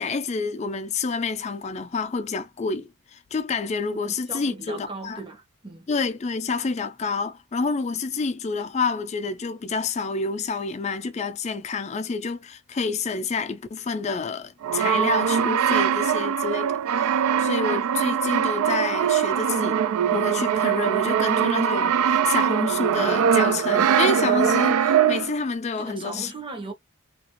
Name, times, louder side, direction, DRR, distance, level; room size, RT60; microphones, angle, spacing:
voice 1, 0.0-5.2 5.9-19.8 20.1-26.3, left 4 dB, 30° left, 0.3 m, -28 dB
voice 2, 3.9-5.9 25.7-26.7, right 2 dB, 25° right, 0.8 m, -38 dB
Brass instrument, 14.6-25.4, right 8 dB, 80° right, 0.3 m, -22 dB
2.8 x 2.5 x 2.9 m
head